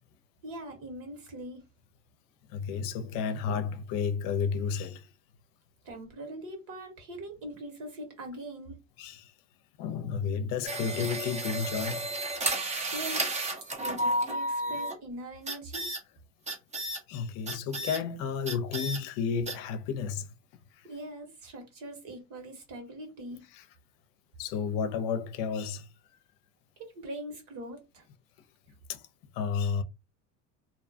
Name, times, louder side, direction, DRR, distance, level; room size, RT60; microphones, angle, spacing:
voice 1, 0.4-1.6 5.8-8.8 12.9-13.4 13.8-15.9 20.8-23.4 26.8-28.0, right 1 dB, 60° right, 1.5 m, -42 dB
voice 2, 2.5-5.1 9.0-9.3 9.8-12.1 14.7-14.8 17.1-20.3 20.8-20.9 23.5-23.7 24.4-25.9 28.9-29.0 29.3-29.8, left 6 dB, 60° left, 0.7 m, -32 dB
sound 1, 10.6-15.0 15.5-16.0 16.5-17.0 17.5-18.0 18.5-19.0 19.5-19.6, right 1 dB, 20° right, 0.7 m, -32 dB
2.7 x 2.2 x 2.7 m
supercardioid pair, 95°, 38 cm